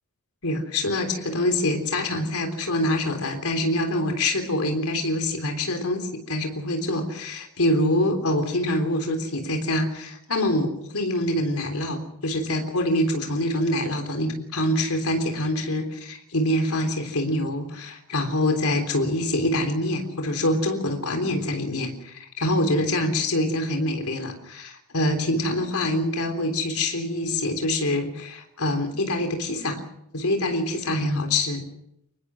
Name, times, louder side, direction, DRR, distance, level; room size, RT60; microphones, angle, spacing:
voice 1, 0.4-29.8 30.1-31.6, left 1 dB, 75° left, 5 dB, 3.6 m, -25 dB
25.0 x 20.0 x 6.3 m, 0.78 s
head